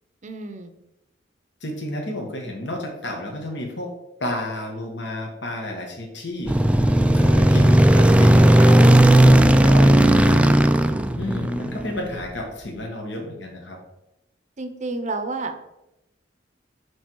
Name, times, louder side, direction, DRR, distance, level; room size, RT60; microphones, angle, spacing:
voice 1, 0.2-0.7 14.6-15.6, right 3 dB, 40° right, 7 dB, 0.7 m, -31 dB
voice 2, 1.6-3.9 4.2-8.9 9.2-10.4 11.1-13.8, left 1 dB, 65° left, 1 dB, 1.4 m, -31 dB
sound 1, 6.5-11.9, right 1 dB, 5° right, 0.3 m, -15 dB
10.0 x 3.4 x 4.5 m, 0.91 s
head